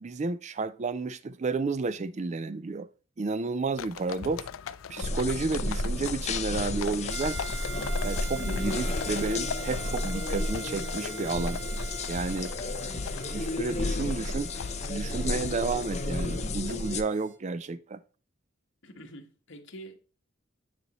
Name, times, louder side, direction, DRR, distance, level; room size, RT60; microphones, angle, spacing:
voice 1, 0.0-2.9 3.2-4.5 4.9-7.4 8.0-11.6 12.1-12.5 12.8-14.5 14.9-18.0, right 3 dB, 35° right, 0.4 m, -31 dB
sound 1, 3.8-16.8, left 6 dB, 85° left, 0.4 m, -40 dB
sound 2, 5.0-17.0, left 2 dB, 35° left, 0.6 m, -32 dB
Harmonica, 7.1-17.4, right 6 dB, 70° right, 1.1 m, -44 dB
voice 2, 18.8-20.0, right 1 dB, 65° left, 1.4 m, -46 dB
9.5 x 4.2 x 3.0 m
head